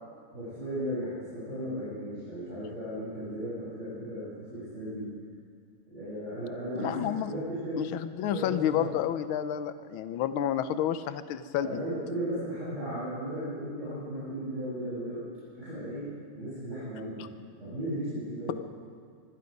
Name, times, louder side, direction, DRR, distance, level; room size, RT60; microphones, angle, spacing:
voice 1, 0.3-5.1 5.9-7.8 8.2-8.9 11.6-15.2 15.5-17.3 17.6-18.5, equal, 35° right, -12 dB, 8.3 m, -36 dB
voice 2, 6.8-7.3 7.8-11.8, left 10 dB, 80° left, 11 dB, 1.6 m, -30 dB
25.5 x 21.0 x 5.4 m, 2.2 s
omnidirectional pair, 2.3 m